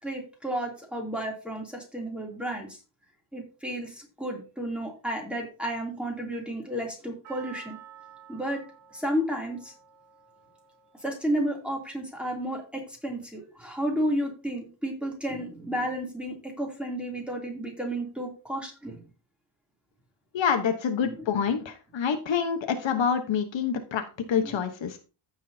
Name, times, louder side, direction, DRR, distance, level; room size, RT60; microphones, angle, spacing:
voice 1, 0.0-2.8 3.3-7.8 8.3-8.6 8.9-9.7 11.0-19.0, equal, ahead, 0 dB, 2.9 m, -32 dB
Percussion, 7.2-11.6 11.9-12.0, right 9 dB, 55° right, 3.6 m, -51 dB
voice 2, 20.3-24.0 24.3-25.0, left 7 dB, 65° left, 6 dB, 1.2 m, -27 dB
15.0 x 6.4 x 2.8 m, 0.32 s
wide cardioid pair, 155°, 49 cm